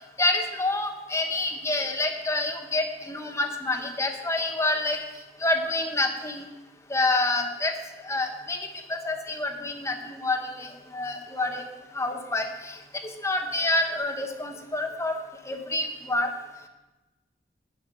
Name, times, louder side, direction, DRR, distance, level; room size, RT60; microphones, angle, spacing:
voice 1, 0.2-5.0 5.4-6.5 6.9-7.7 8.0-8.6 8.9-11.7 11.9-12.8 13.0-15.1 15.5-16.3, left 2 dB, 15° left, 4 dB, 1.0 m, -27 dB
9.8 x 5.9 x 8.4 m, 1.1 s
head